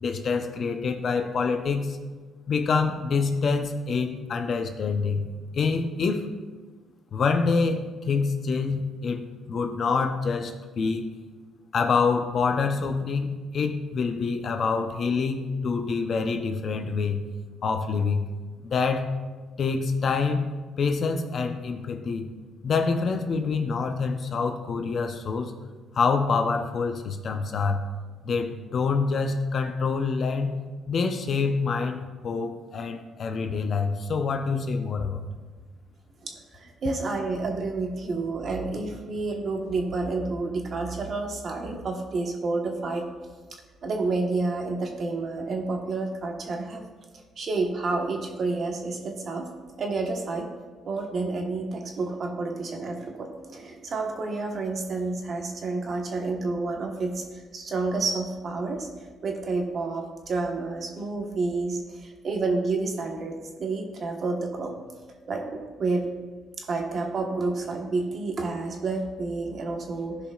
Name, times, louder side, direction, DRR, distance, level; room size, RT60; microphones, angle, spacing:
voice 1, 0.0-2.0 2.5-6.3 7.1-9.2 9.5-11.1 11.7-17.2 17.6-18.3 18.6-19.1 19.6-20.5 20.8-22.3 22.6-25.5 25.9-27.9 28.2-30.5 30.9-35.2, left 4 dB, 55° left, 6 dB, 0.8 m, -26 dB
voice 2, 36.2-43.1 43.8-46.8 47.4-49.5 49.8-50.5 50.8-64.7 65.3-66.1 66.6-70.2, right 3 dB, 50° right, 2 dB, 1.3 m, -29 dB
15.5 x 5.2 x 2.5 m, 1.3 s
cardioid pair, 90°, 0 cm